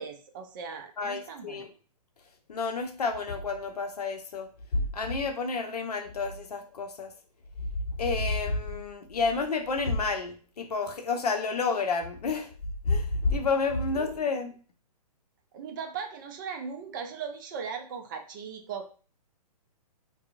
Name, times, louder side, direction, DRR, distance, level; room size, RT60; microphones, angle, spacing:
voice 1, 0.0-1.6 13.9-14.1 15.5-18.9, right 6 dB, 30° right, 5 dB, 0.3 m, -38 dB
voice 2, 1.0-1.7 2.5-7.1 8.0-12.5 12.8-14.5, left 4 dB, 75° left, 5 dB, 0.6 m, -30 dB
2.7 x 2.0 x 2.5 m, 0.39 s
figure-of-eight pair, 125°, 20 cm